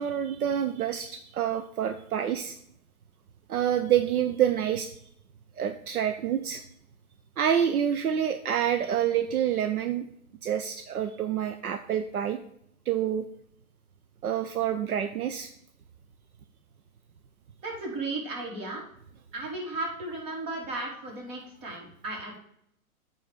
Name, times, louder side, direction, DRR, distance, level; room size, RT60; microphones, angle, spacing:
voice 1, 0.0-2.6 3.5-4.9 5.6-6.6 7.4-10.0 10.4-12.4 12.9-13.3 14.2-15.5, right 9 dB, 80° right, 8 dB, 0.8 m, -27 dB
voice 2, 17.6-18.8 19.3-22.4, right 2 dB, 40° right, -1 dB, 3.9 m, -35 dB
8.9 x 4.3 x 6.7 m, 0.71 s
hypercardioid pair, 120°, 43 cm